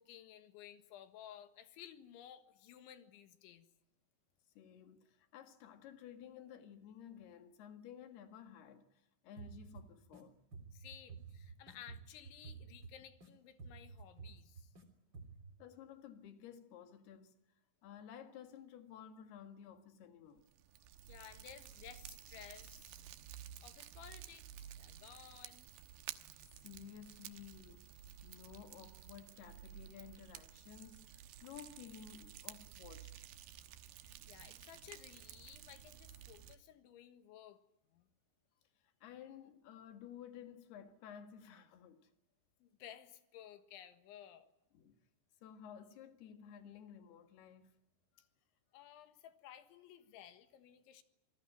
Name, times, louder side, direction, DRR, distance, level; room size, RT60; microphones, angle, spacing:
voice 1, 0.0-3.7 10.7-14.7 21.1-23.0 23.6-25.7 34.0-37.6 37.9-38.1 42.6-44.5 48.2-48.3 48.7-51.0, left 10 dB, 85° left, 4.0 m, -56 dB
voice 2, 4.6-10.4 15.6-17.3 17.8-20.4 26.4-27.9 28.2-33.2 39.0-42.1 44.7-45.0 45.4-47.8 48.2-48.3, left 8 dB, 65° left, 3.6 m, -54 dB
sound 1, 9.4-10.2 10.5-13.3 13.6-14.8 15.1-15.5, right 5 dB, 25° right, 3.7 m, -52 dB
Fire, 20.4-36.6, right 11 dB, 70° right, 2.8 m, -53 dB
27.0 x 19.5 x 9.2 m
omnidirectional pair, 5.2 m